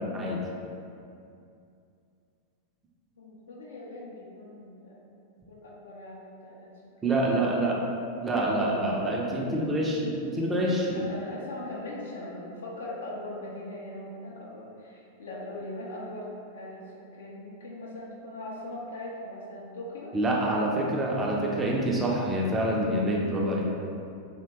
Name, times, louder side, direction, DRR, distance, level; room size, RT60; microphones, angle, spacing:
voice 1, 0.1-0.4 7.0-7.8 8.2-11.0 20.1-23.7, right 1 dB, 15° right, -3 dB, 0.4 m, -26 dB
voice 2, 3.2-5.0 5.5-6.7 7.0-7.4 8.5-8.6 9.6-9.7 10.9-16.3 16.5-16.8 17.1-20.1, left 1 dB, 65° left, -3 dB, 0.5 m, -40 dB
2.7 x 2.1 x 2.8 m, 2.5 s
figure-of-eight pair, 90°, 0 cm